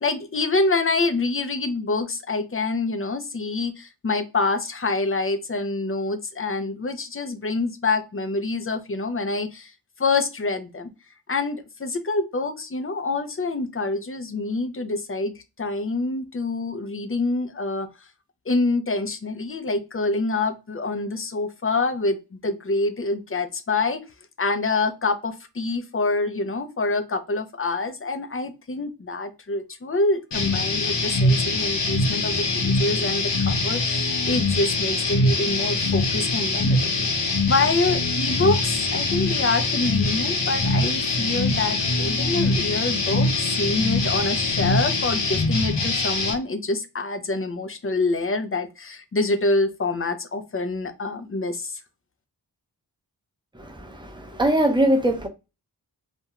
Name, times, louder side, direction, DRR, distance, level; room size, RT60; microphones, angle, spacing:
voice 1, 0.0-9.7 10.0-10.9 11.3-17.9 18.5-24.0 24.4-51.8, left 3 dB, 35° left, 0.5 m, -26 dB
sound 1, 30.3-46.3, left 2 dB, 80° left, 0.7 m, -23 dB
voice 2, 53.5-55.3, right 1 dB, 10° right, 0.6 m, -22 dB
2.5 x 2.2 x 2.8 m
wide cardioid pair, 75°, 41 cm